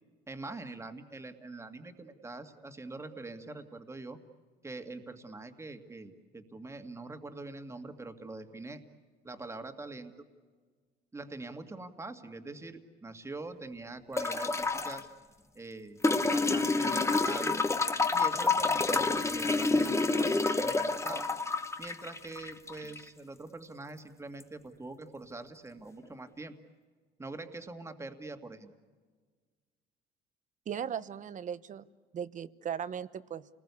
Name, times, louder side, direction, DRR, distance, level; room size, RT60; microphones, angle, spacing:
voice 1, 0.3-4.2 4.6-8.8 9.2-10.1 11.1-15.1 15.6-16.0 16.3-17.7 18.1-21.3 21.8-26.5 27.2-28.7, right 2 dB, 15° right, 7 dB, 2.1 m, -44 dB
sound 1, 14.2-15.0 16.0-23.0 24.4-24.5, left 3 dB, 15° left, 1.4 m, -28 dB
voice 2, 30.7-31.8 32.1-33.4, right 8 dB, 40° right, 15 dB, 1.0 m, -37 dB
29.0 x 20.5 x 8.4 m, 1.5 s
cardioid pair, 120°, 19 cm